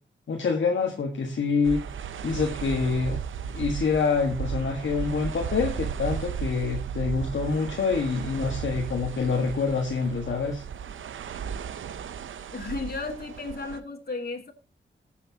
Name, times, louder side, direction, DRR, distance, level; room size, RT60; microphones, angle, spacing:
voice 1, 0.3-1.8 2.2-3.2 3.5-10.6, left 5 dB, 70° left, 0 dB, 1.5 m, -26 dB
sound 1, 1.6-13.8, right 7 dB, 80° right, 0.7 m, -35 dB
voice 2, 12.5-14.5, left 3 dB, 50° left, 2 dB, 2.8 m, -34 dB
16.5 x 8.2 x 2.8 m, 0.32 s
cardioid pair, 50°, 20 cm